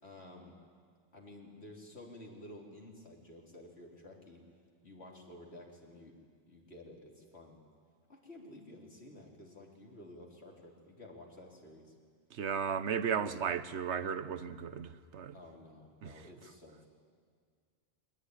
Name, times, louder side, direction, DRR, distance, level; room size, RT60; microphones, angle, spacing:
voice 1, 0.0-0.5 1.1-4.4 4.8-6.1 6.5-7.6 8.1-11.9 15.3-16.9, left 1 dB, 70° left, 4.0 m, -52 dB
voice 2, 12.3-15.3 16.0-16.1, right 7 dB, 85° right, 1.2 m, -35 dB
23.5 x 20.0 x 9.9 m
omnidirectional pair, 1.1 m